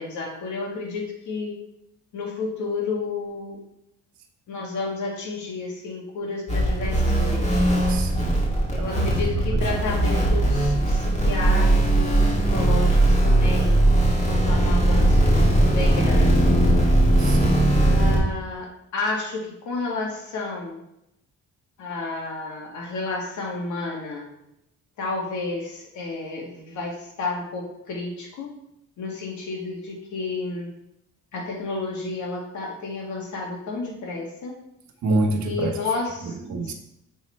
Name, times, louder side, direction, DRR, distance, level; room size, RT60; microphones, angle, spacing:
voice 1, 0.0-1.5 2.1-3.6 4.5-7.9 8.7-13.8 14.3-16.6 17.8-20.8 21.8-24.3 25.0-28.5 29.0-30.7 31.3-34.5 35.4-36.4 36.6-36.7, left 3 dB, 75° left, -1 dB, 2.0 m, -31 dB
sound 1, 6.5-18.2, right 1 dB, 25° left, 2.0 m, -19 dB
voice 2, 7.9-8.5 8.7-8.9 9.5-9.6 17.2-17.7 35.0-35.8 36.2-36.7, right 2 dB, 70° right, 4 dB, 1.2 m, -27 dB
6.5 x 4.1 x 4.4 m, 0.84 s
cardioid pair, 90°, 30 cm